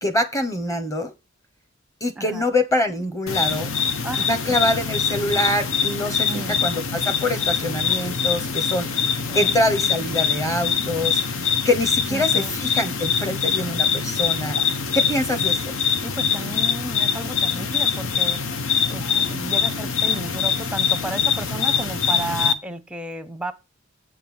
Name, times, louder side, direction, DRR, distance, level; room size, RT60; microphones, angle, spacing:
voice 1, 0.0-1.1 2.0-3.7 4.3-8.9 9.3-11.2 11.6-14.5 14.9-15.6, left 1 dB, 15° left, 1.1 m, -24 dB
sound 1, 3.3-22.5, left 6 dB, 75° left, 0.8 m, -23 dB
voice 2, 6.3-6.6 9.3-9.5 12.1-12.5 16.0-18.4 18.9-23.5, right 2 dB, 5° right, 0.7 m, -33 dB
8.2 x 4.6 x 7.2 m
head